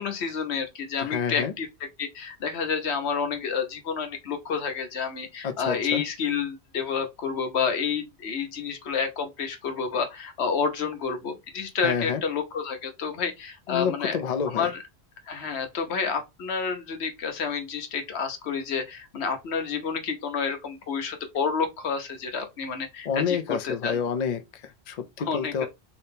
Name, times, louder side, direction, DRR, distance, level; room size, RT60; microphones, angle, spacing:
voice 1, 0.0-1.7 2.0-14.2 14.5-14.8 15.3-24.0 25.3-25.7, left 6 dB, 75° left, 1.0 m, -29 dB
voice 2, 1.0-1.5 5.4-6.0 11.8-12.2 13.7-14.7 23.0-25.7, left 7 dB, 55° left, 0.5 m, -28 dB
3.4 x 2.9 x 2.7 m
omnidirectional pair, 1.1 m